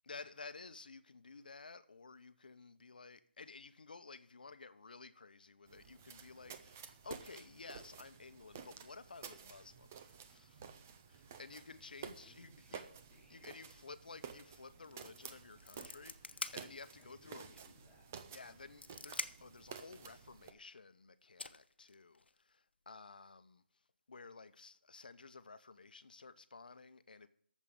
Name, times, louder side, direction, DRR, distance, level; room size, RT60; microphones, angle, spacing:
voice 1, 0.0-10.7 11.1-12.8 13.3-17.6 18.3-23.6 24.1-27.3, left 4 dB, 55° left, 0.9 m, -54 dB
sound 1, 5.7-20.5, right 7 dB, 15° right, 0.5 m, -53 dB
voice 2, 12.2-13.5 17.0-18.1, left 1 dB, 5° left, 2.4 m, -64 dB
sound 2, 14.8-15.1 15.3-17.1 17.6-17.7 18.4-19.6 20.8-20.9 21.4-22.4, left 3 dB, 75° left, 1.0 m, -45 dB
9.0 x 7.4 x 8.2 m
hypercardioid pair, 180°, 6 cm